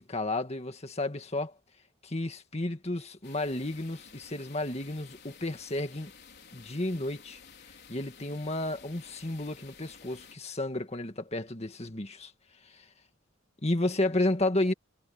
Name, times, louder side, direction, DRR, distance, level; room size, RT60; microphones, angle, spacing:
voice 1, 0.0-1.5 2.0-6.1 6.5-7.4 7.9-12.3 12.7-12.9 13.6-14.7, left 1 dB, 30° left, 2.0 m, -32 dB
sound 1, 3.2-10.3, left 6 dB, 50° left, 4.2 m, -53 dB
head